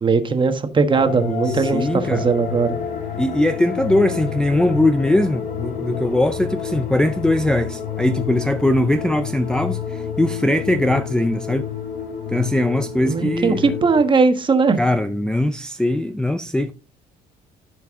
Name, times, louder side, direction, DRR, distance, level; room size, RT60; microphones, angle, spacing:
voice 1, 0.0-2.8 13.1-14.8, right 4 dB, 30° right, 1.2 m, -19 dB
sound 1, 0.9-14.1, left 7 dB, 50° left, 2.7 m, -29 dB
voice 2, 1.5-2.3 3.2-11.7 12.3-13.7 14.8-16.7, left 1 dB, 5° left, 0.4 m, -20 dB
12.0 x 4.6 x 3.6 m
cardioid pair, 110°, 17 cm